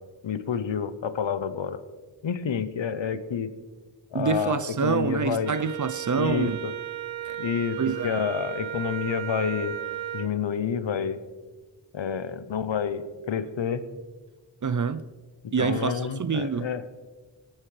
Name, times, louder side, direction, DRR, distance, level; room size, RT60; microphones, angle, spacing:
voice 1, 0.2-1.8 2.2-3.5 4.1-5.6 6.1-6.7 7.4-9.8 10.1-11.2 11.9-13.8 15.4-16.8, left 7 dB, 75° left, 0.9 m, -29 dB
voice 2, 4.1-6.6 7.3-7.4 7.8-8.2 14.6-15.1 15.5-16.7, right 5 dB, 40° right, 0.6 m, -27 dB
Wind instrument woodwind instrument, 5.4-10.3, right 12 dB, 80° right, 0.7 m, -35 dB
18.0 x 9.2 x 3.3 m
cardioid pair, 45°, 46 cm